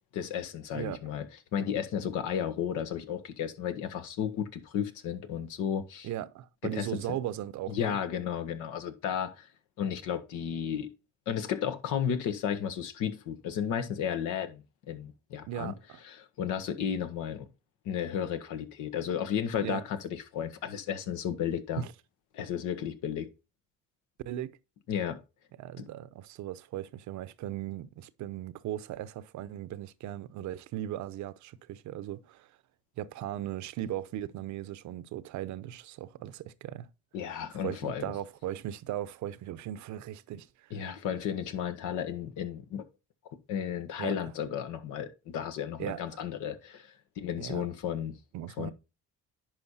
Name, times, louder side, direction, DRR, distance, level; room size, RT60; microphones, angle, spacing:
voice 1, 0.1-1.3 1.5-6.1 6.7-6.9 7.7-9.5 9.8-10.9 11.3-15.7 16.1-17.5 17.8-21.8 22.3-23.3 24.9-25.2 25.8-25.9 37.1-38.0 40.7-42.9 43.5-48.2 48.6-48.7, left 8 dB, 80° left, 1.4 m, -33 dB
voice 2, 6.0-8.0 15.5-16.0 19.6-19.8 21.8-21.9 24.2-24.6 25.6-32.5 33.0-36.9 37.5-40.8 44.0-44.1 45.8-46.2 47.4-47.7 48.3-48.7, right 12 dB, 70° right, 0.8 m, -38 dB
10.5 x 5.2 x 4.2 m
supercardioid pair, 80°, 30 cm